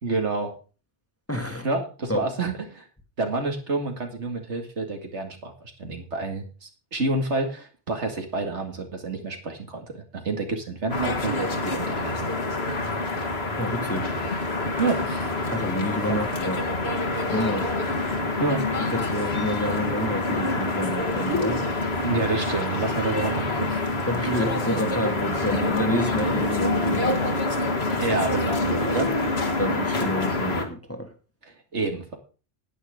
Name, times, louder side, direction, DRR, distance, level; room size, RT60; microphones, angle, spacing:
voice 1, 0.0-0.5 1.6-2.8 3.2-5.5 5.8-12.3 14.8-15.3 16.1-16.2 18.4-18.6 22.0-23.8 25.4-25.5 26.2-26.4 28.0-29.1 31.7-32.2, right 3 dB, 90° right, 4 dB, 2.5 m, -28 dB
voice 2, 1.3-1.7 2.1-2.2 13.6-14.1 15.4-16.6 17.3-17.7 18.9-21.6 24.1-27.4 29.6-31.1, equal, 15° left, 5 dB, 1.4 m, -29 dB
sound 1, 10.9-30.6, left 2 dB, 65° left, 2.1 m, -26 dB
10.5 x 9.6 x 5.1 m, 0.36 s
omnidirectional pair, 1.1 m